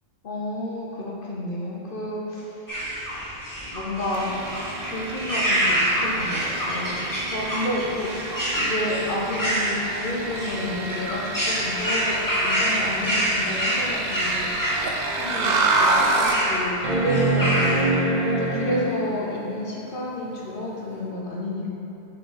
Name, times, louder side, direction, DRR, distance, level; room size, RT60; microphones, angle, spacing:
voice 1, 0.2-2.7 3.6-4.4 4.8-12.2 12.4-14.9 15.2-15.5 15.8-17.5 18.2-21.8, left 1 dB, 50° left, -3 dB, 1.0 m, -30 dB
sound 1, 2.7-17.9, equal, 15° left, 1.1 m, -27 dB
sound 2, 4.1-16.5, right 3 dB, 60° right, 0.7 m, -29 dB
sound 3, 16.8-19.3 21.0-21.1, right 2 dB, 40° right, 1.1 m, -24 dB
6.7 x 4.1 x 3.9 m, 2.9 s
omnidirectional pair, 1.3 m